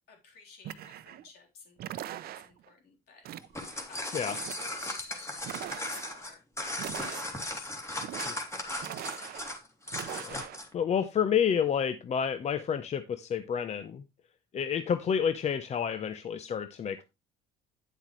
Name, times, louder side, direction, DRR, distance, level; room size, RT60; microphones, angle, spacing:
voice 1, 0.1-4.3 4.7-6.4 7.1-9.4, left 5 dB, 70° left, 1 dB, 3.8 m, -53 dB
sound 1, 0.6-1.3 1.8-2.7 3.2-3.9 4.2-4.9 5.4-6.2 6.7-7.6 7.9-8.5 8.8-9.6 9.9-10.6, right 12 dB, 65° right, 0.7 m, -42 dB
sound 2, 3.4-10.7, left 1 dB, 15° left, 2.5 m, -37 dB
voice 2, 10.7-14.0 14.5-17.0, left 8 dB, 40° left, 10 dB, 0.7 m, -29 dB
9.3 x 7.8 x 3.1 m, 0.24 s
cardioid pair, 110°, 17 cm